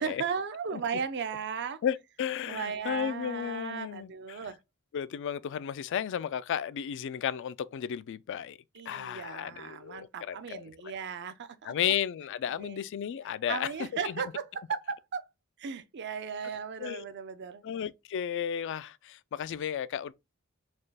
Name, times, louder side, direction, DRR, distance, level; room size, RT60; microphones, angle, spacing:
voice 1, 0.0-1.8 2.5-4.6 8.7-11.7 12.5-12.8 13.5-15.2 15.6-17.6, right 6 dB, 50° right, 0.5 m, -36 dB
voice 2, 1.8-4.4 4.9-8.6 8.9-10.9 11.6-13.7 14.0-14.2 16.8-17.1 17.6-20.1, left 9 dB, 55° left, 0.3 m, -34 dB
4.2 x 2.3 x 3.3 m
head